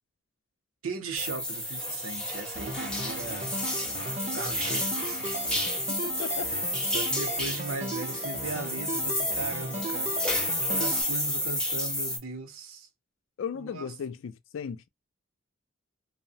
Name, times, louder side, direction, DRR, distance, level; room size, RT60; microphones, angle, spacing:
voice 1, 0.8-3.5 4.3-5.4 6.3-6.6 6.9-10.1 10.7-12.9 13.6-13.9, right 4 dB, 90° right, 0.6 m, -38 dB
sound 1, 1.2-12.2, left 1 dB, 5° left, 0.9 m, -31 dB
sound 2, 2.6-11.0, right 2 dB, 35° right, 0.5 m, -37 dB
voice 2, 5.9-6.5 13.4-14.9, left 6 dB, 75° left, 0.3 m, -36 dB
2.7 x 2.0 x 2.7 m
head